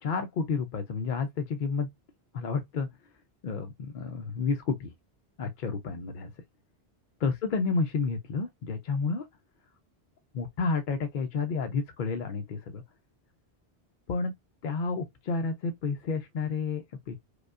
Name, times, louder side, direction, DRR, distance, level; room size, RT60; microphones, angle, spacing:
voice 1, 0.0-1.9 2.3-2.9 3.4-4.9 5.4-6.3 7.2-9.3 10.3-12.8 14.1-14.3 14.6-17.2, left 4 dB, 60° left, 0.6 m, -30 dB
4.8 x 2.2 x 2.4 m
omnidirectional pair, 1.1 m